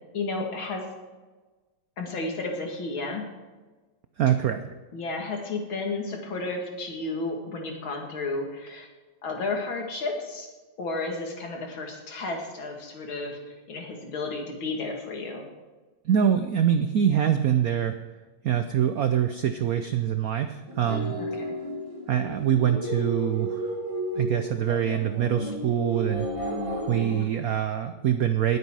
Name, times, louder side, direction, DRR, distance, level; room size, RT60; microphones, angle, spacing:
voice 1, 0.1-0.8 2.0-3.2 4.9-8.9 9.2-10.5 10.8-13.4 13.7-15.5 21.2-21.4, left 3 dB, 70° left, 1 dB, 3.0 m, -32 dB
voice 2, 4.2-4.6 16.0-18.0 18.4-21.2 22.1-23.7 24.2-26.3 26.9-28.6, right 9 dB, 75° right, 8 dB, 0.8 m, -24 dB
sound 1, 20.7-27.3, equal, 20° right, 1.1 m, -32 dB
20.0 x 8.3 x 4.8 m, 1.3 s
omnidirectional pair, 2.3 m